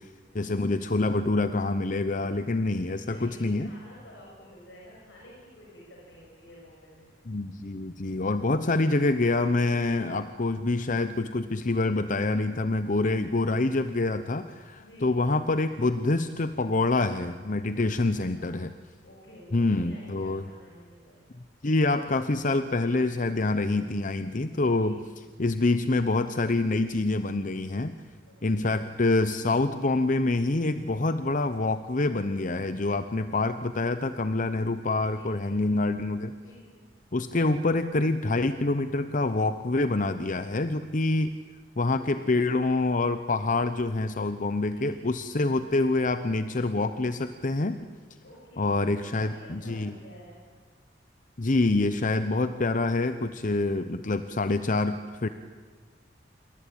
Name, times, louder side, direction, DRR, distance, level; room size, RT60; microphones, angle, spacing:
voice 1, 0.3-3.7 7.3-18.7 19.5-20.5 21.6-25.0 25.4-28.0 28.4-36.3 37.1-41.3 41.8-47.8 48.6-49.9 51.4-55.3, left 2 dB, 45° left, 11 dB, 0.8 m, -26 dB
voice 2, 2.9-7.1 14.8-15.1 18.3-18.5 19.0-21.2 24.6-25.1 28.3-28.8 35.1-35.7 36.4-36.7 42.0-42.4 44.7-45.0 45.4-45.6 48.2-48.7 49.0-50.4, equal, 80° left, -3 dB, 6.7 m, -51 dB
27.0 x 23.0 x 8.8 m, 1.5 s
head